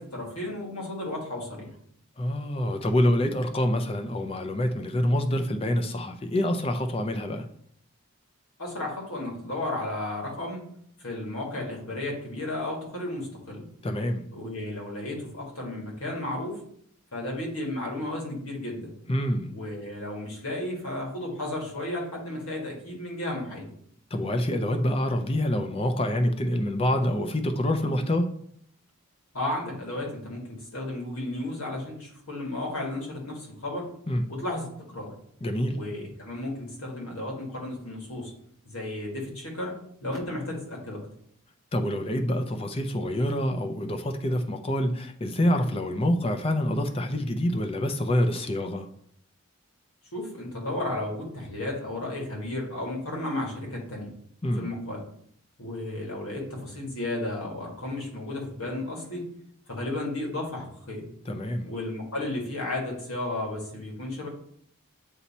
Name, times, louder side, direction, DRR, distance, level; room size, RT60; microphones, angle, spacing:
voice 1, 0.0-1.7 8.6-10.6 11.0-13.6 14.3-16.6 17.1-18.9 19.5-23.7 29.3-33.8 34.3-35.1 35.7-38.3 38.6-39.8 40.0-41.0 50.1-54.1 54.6-55.0 55.6-59.3 59.7-61.0 61.6-64.3, left 1 dB, 90° left, -1 dB, 2.0 m, -33 dB
voice 2, 2.2-7.5 13.8-14.2 19.1-19.5 24.1-28.3 34.1-34.2 35.4-35.8 41.7-48.9 54.4-54.7 61.3-61.7, left 1 dB, 25° left, 6 dB, 0.5 m, -26 dB
8.1 x 2.8 x 4.2 m, 0.66 s
head